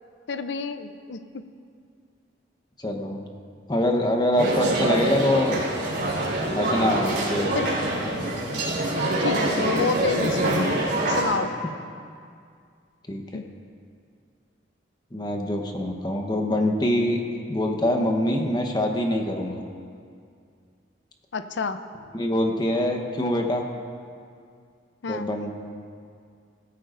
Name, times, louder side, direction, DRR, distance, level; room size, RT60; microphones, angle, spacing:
voice 1, 0.3-1.4 7.5-7.7 9.2-10.8 11.1-11.5 13.3-13.4 21.3-21.8 25.0-25.3, left 4 dB, 70° left, 10 dB, 0.6 m, -29 dB
voice 2, 2.8-3.2 3.7-5.6 6.5-7.6 11.3-11.4 13.1-13.2 15.1-17.2 17.5-19.6 22.1-23.6 25.1-25.5, left 1 dB, 20° left, 3 dB, 1.0 m, -24 dB
sound 1, 4.4-11.2, right 1 dB, 60° right, 3.1 m, -25 dB
17.0 x 14.0 x 2.6 m, 2.3 s
head